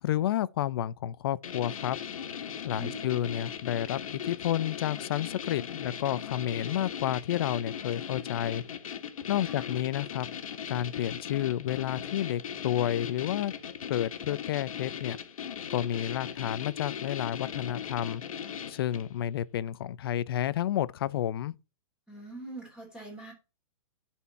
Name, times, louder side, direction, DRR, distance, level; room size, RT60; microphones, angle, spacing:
voice 1, 0.0-2.0 2.6-8.6 9.3-10.3 10.7-13.5 13.9-15.2 15.7-18.2 18.7-21.5, left 12 dB, 40° left, 0.5 m, -30 dB
sound 1, 1.4-19.2, left 8 dB, 70° left, 1.5 m, -38 dB
voice 2, 2.7-3.2 9.4-9.7 22.1-23.3, right 2 dB, 5° right, 3.1 m, -43 dB
10.5 x 4.4 x 4.1 m
hypercardioid pair, 165°, 18 cm